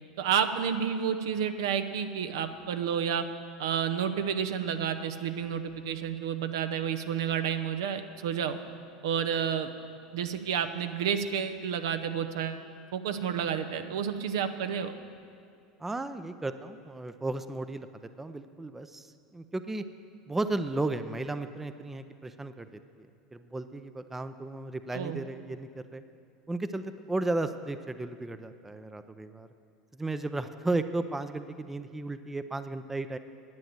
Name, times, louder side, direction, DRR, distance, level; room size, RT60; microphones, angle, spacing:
voice 1, 0.2-3.2 3.6-8.6 9.0-9.7 10.1-12.6 12.9-14.9 24.9-25.2, right 8 dB, 65° right, 8 dB, 0.7 m, -30 dB
voice 2, 15.8-17.9 18.2-19.1 19.3-19.8 20.3-22.7 23.0-23.1 23.3-26.0 26.5-29.5 29.9-33.2, right 2 dB, 10° right, 11 dB, 0.5 m, -34 dB
10.5 x 8.9 x 7.7 m, 2.4 s
figure-of-eight pair, 80°, 2 cm